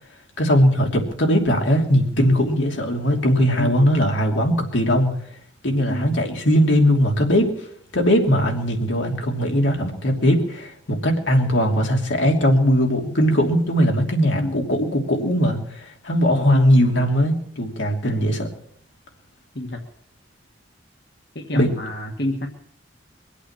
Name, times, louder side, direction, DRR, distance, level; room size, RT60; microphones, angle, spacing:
voice 1, 0.4-5.1 5.6-7.7 7.9-18.5 21.5-21.7, equal, 90° left, 2 dB, 3.0 m, -19 dB
voice 2, 5.9-6.2 14.3-14.6 16.3-16.8 18.0-18.3 19.5-19.9 21.3-22.5, left 1 dB, 60° left, 2 dB, 1.7 m, -29 dB
23.0 x 8.4 x 7.4 m, 0.66 s
head